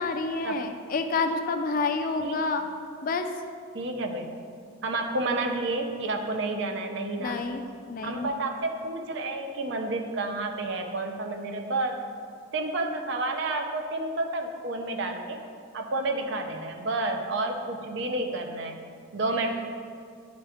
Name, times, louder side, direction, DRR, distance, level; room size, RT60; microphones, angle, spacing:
voice 1, 0.0-2.7 3.0-3.3 7.2-8.3, left 3 dB, 40° left, 7 dB, 0.3 m, -29 dB
voice 2, 3.7-4.4 4.8-7.4 8.0-12.0 12.5-15.4 15.7-18.8 19.1-19.5, right 2 dB, 55° right, 4 dB, 0.6 m, -30 dB
10.0 x 3.6 x 3.5 m, 2.2 s
head